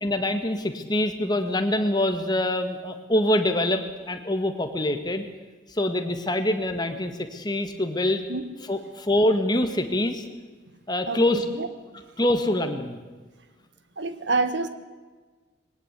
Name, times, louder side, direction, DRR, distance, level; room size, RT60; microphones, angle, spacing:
voice 1, 0.0-5.2 5.7-8.2 8.7-10.2 10.9-11.4 12.2-13.0, left 1 dB, 20° left, 7 dB, 1.8 m, -25 dB
voice 2, 11.1-11.7 14.0-14.7, right 3 dB, 65° right, 11 dB, 1.6 m, -27 dB
21.0 x 18.0 x 8.3 m, 1.4 s
head